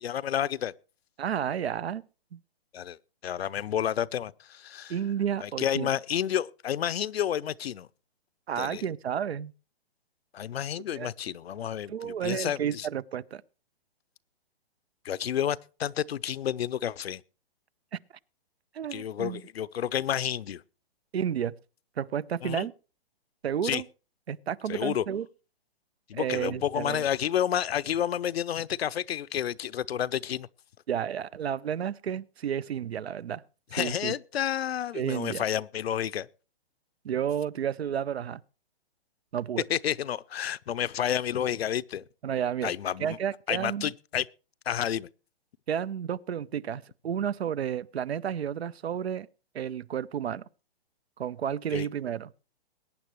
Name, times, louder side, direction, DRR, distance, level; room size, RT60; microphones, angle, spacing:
voice 1, 0.0-0.7 2.7-3.0 3.2-4.9 5.4-7.9 8.6-8.9 10.3-12.9 15.0-17.2 18.9-20.6 22.4-22.7 23.6-23.8 24.7-25.0 26.1-30.5 33.7-36.3 39.7-42.0 42.6-43.2 43.5-44.3 44.7-45.1 51.7-51.9, left 10 dB, 75° left, 0.7 m, -30 dB
voice 2, 1.2-2.0 2.3-2.4 4.9-5.9 8.5-9.5 10.9-11.1 11.9-13.4 18.7-19.4 21.1-21.5 22.0-22.7 23.4-23.8 24.3-25.3 26.2-27.0 30.9-33.4 33.8-34.1 34.9-35.4 37.0-38.4 39.3-39.6 42.2-42.7 43.0-43.9 45.7-49.3 49.5-50.4 51.2-52.3, right 9 dB, 85° right, 0.7 m, -31 dB
21.5 x 9.5 x 3.1 m
hypercardioid pair, 145°, 31 cm